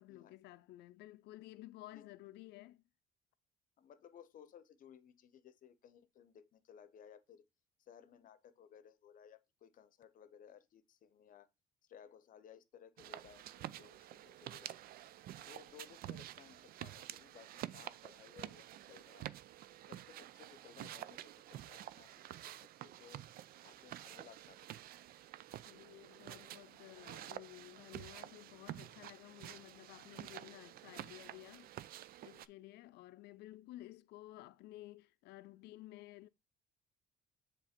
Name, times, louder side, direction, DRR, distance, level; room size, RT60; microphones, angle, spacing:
voice 1, 0.0-2.8 25.7-36.3, left 16 dB, 80° left, 0.5 m, -54 dB
voice 2, 3.8-7.5 7.8-11.5 11.8-14.8 15.4-19.3 19.9-23.3 23.6-25.0, left 8 dB, 55° left, 0.8 m, -60 dB
sound 1, 13.0-32.5, right 13 dB, 60° right, 0.4 m, -50 dB
7.4 x 3.6 x 4.3 m
cardioid pair, 110°, 17 cm